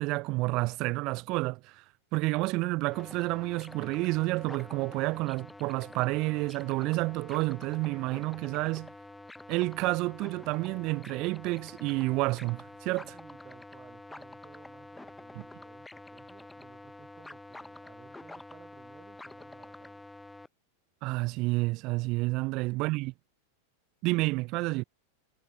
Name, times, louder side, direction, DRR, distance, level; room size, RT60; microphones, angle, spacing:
voice 1, 0.0-1.8 2.1-8.9 9.5-13.1 21.0-23.1 24.0-24.8, right 22 dB, 40° right, 0.4 m, -30 dB
sound 1, 2.9-20.5, left 2 dB, 5° left, 2.0 m, -48 dB
sound 2, 9.1-19.1, left 10 dB, 25° left, 7.6 m, -75 dB
voice 2, 13.1-20.1, right 8 dB, 20° right, 7.9 m, -58 dB
figure-of-eight pair, 90°, 0 cm